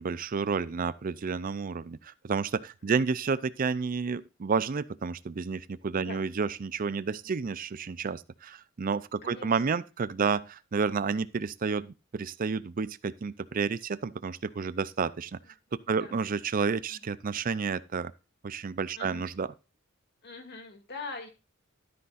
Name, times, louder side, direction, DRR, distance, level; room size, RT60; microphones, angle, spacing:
voice 1, 0.0-15.4 15.9-18.1 18.4-19.5, right 5 dB, 45° right, 0.4 m, -30 dB
voice 2, 9.2-9.8 10.2-10.3 15.9-16.2 16.9-17.1 19.0-19.2 20.2-21.3, left 3 dB, 55° left, 2.5 m, -43 dB
12.5 x 9.6 x 2.5 m
head